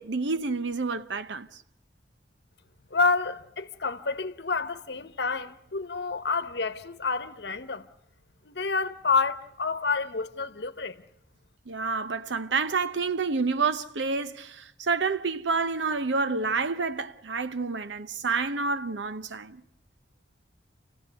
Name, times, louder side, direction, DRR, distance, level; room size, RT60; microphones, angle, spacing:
voice 1, 0.0-1.5 11.7-19.6, right 4 dB, 75° right, 0.8 m, -28 dB
voice 2, 2.9-7.9 8.4-11.0, left 4 dB, 60° left, 1.0 m, -29 dB
28.0 x 16.0 x 8.2 m
head